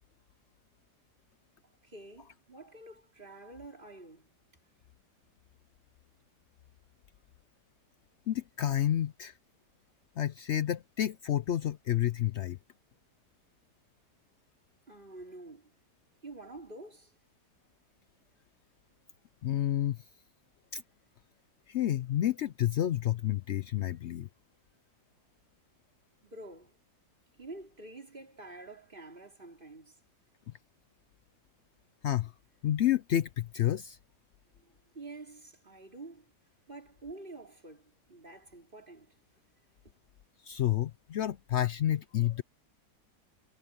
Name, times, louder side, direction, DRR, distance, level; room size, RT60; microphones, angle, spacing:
voice 1, 1.6-4.3 14.9-15.7 16.2-17.1 26.2-26.8 27.4-30.0 34.6-36.3 36.7-39.2 39.8-39.9, right 2 dB, 30° right, 3.9 m, -48 dB
voice 2, 8.3-9.3 10.2-12.6 19.4-20.0 20.7-20.8 21.7-24.3 30.5-30.6 32.0-32.3 32.6-34.0 40.4-42.4, left 12 dB, 90° left, 0.6 m, -30 dB
omnidirectional pair, 1.8 m